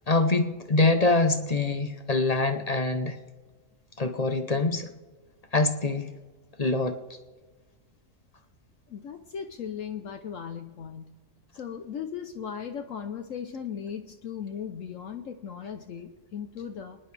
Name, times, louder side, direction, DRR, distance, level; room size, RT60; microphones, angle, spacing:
voice 1, 0.1-3.2 4.0-4.9 5.5-6.1 6.6-7.0, left 2 dB, 35° left, 7 dB, 0.7 m, -24 dB
voice 2, 8.9-11.1 11.6-17.0, left 7 dB, 65° left, 5 dB, 1.1 m, -37 dB
29.5 x 10.5 x 3.3 m, 1.3 s
omnidirectional pair, 1.6 m